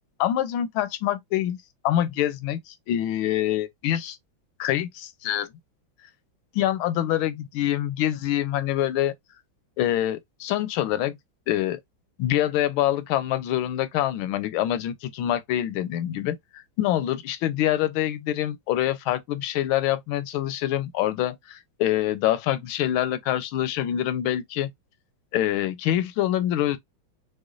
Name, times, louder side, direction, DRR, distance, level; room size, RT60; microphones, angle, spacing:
voice 1, 0.2-1.6 1.8-4.2 4.6-5.5 6.5-9.1 9.8-11.2 11.5-11.8 12.2-24.7 25.3-26.8, left 12 dB, 80° left, 1.4 m, -25 dB
4.9 x 2.2 x 2.4 m
omnidirectional pair, 2.2 m